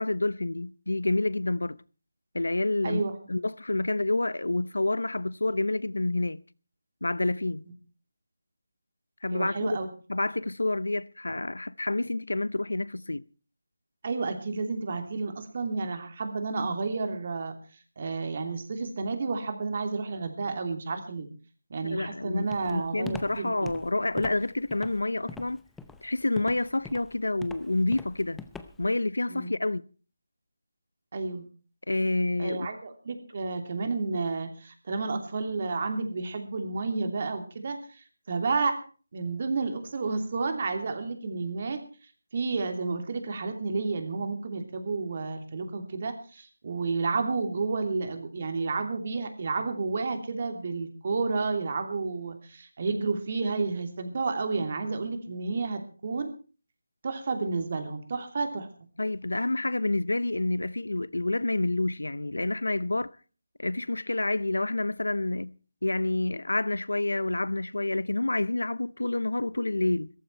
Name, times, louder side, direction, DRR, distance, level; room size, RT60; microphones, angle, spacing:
voice 1, 0.0-1.8 2.3-3.0 3.3-6.4 7.0-7.6 9.2-9.8 10.1-13.3 21.8-25.6 26.0-28.4 28.8-29.8 31.9-32.7 59.0-63.1 63.6-65.5 65.8-70.1, left 2 dB, 85° left, 0.7 m, -28 dB
voice 2, 9.3-9.9 14.0-17.6 18.0-21.3 21.7-23.7 29.3-29.5 31.1-31.4 32.4-38.8 39.1-41.8 42.3-56.3 57.0-58.7, right 4 dB, 40° right, 2.9 m, -31 dB
Walk footsteps, 22.5-29.0, left 4 dB, 5° left, 0.7 m, -43 dB
16.0 x 14.5 x 4.6 m
figure-of-eight pair, 165°, 0 cm